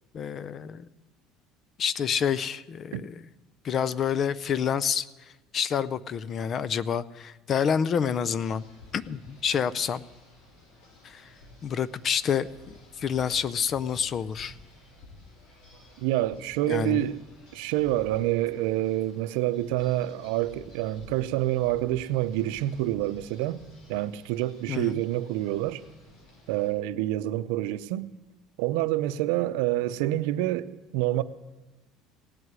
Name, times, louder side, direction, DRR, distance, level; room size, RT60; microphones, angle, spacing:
voice 1, 0.1-0.9 1.8-3.2 3.6-8.6 8.9-10.0 11.0-11.3 11.6-14.6 16.7-17.1 24.7-25.0, left 7 dB, 35° left, 0.5 m, -28 dB
sound 1, 8.4-26.7, left 2 dB, 60° left, 5.5 m, -52 dB
voice 2, 16.0-17.2 17.5-23.6 23.9-25.8 26.5-28.1 28.6-31.2, right 15 dB, 85° right, 0.7 m, -27 dB
17.0 x 7.9 x 9.7 m
cardioid pair, 150°, 0 cm